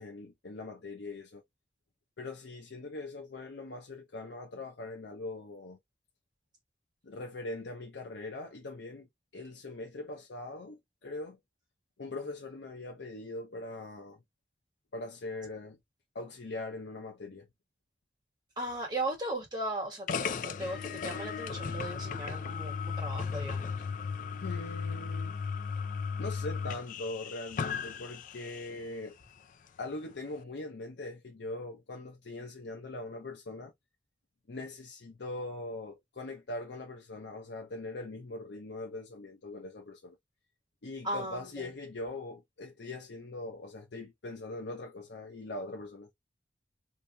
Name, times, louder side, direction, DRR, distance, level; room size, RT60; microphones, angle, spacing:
voice 1, 0.0-1.4 2.2-5.8 7.0-9.1 9.3-11.4 12.0-14.2 14.9-15.8 16.1-17.5 24.3-25.4 26.2-29.2 29.8-33.7 34.5-40.2 40.8-46.1, left 2 dB, 85° left, 0.7 m, -41 dB
voice 2, 18.6-23.7 41.0-41.7, right 1 dB, 25° right, 1.6 m, -37 dB
sound 1, 20.1-28.8, left 5 dB, 45° left, 0.3 m, -36 dB
2.8 x 2.8 x 3.2 m
head